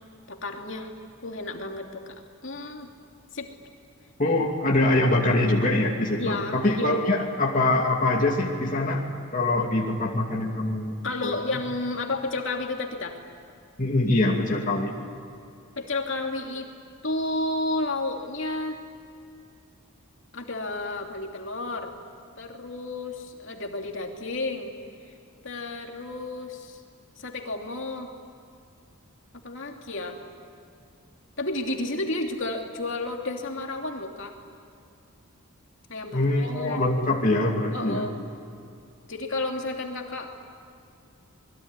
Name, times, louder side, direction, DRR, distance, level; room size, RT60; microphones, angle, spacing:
voice 1, 0.3-0.9 1.2-2.9 3.3-3.5 6.2-7.0 11.0-13.2 15.8-16.7 17.0-18.8 20.3-22.0 22.4-24.8 25.1-25.2 25.4-26.8 27.2-28.1 29.4-30.2 31.4-34.3 35.9-36.9 37.7-38.1 39.1-40.4, left 2 dB, 60° left, 2 dB, 2.9 m, -32 dB
voice 2, 4.2-9.0 9.3-11.0 11.2-11.3 13.8-14.9 36.1-38.1, left 2 dB, 35° left, -1 dB, 2.6 m, -23 dB
28.0 x 21.5 x 9.9 m, 2.5 s
head